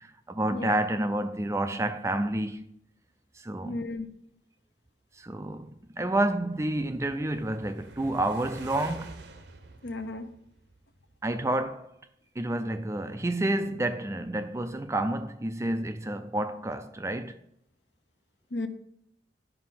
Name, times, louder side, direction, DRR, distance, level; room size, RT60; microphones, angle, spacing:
voice 1, 0.3-2.6 3.4-3.8 5.2-5.7 6.0-9.2 11.2-11.9 12.4-17.4, right 1 dB, 15° right, 0.4 m, -29 dB
voice 2, 3.6-4.1 9.8-10.3 18.5-18.7, left 2 dB, 65° left, 0.9 m, -34 dB
sound 1, 5.6-11.1, right 3 dB, 60° right, 0.9 m, -48 dB
11.5 x 5.2 x 5.8 m
head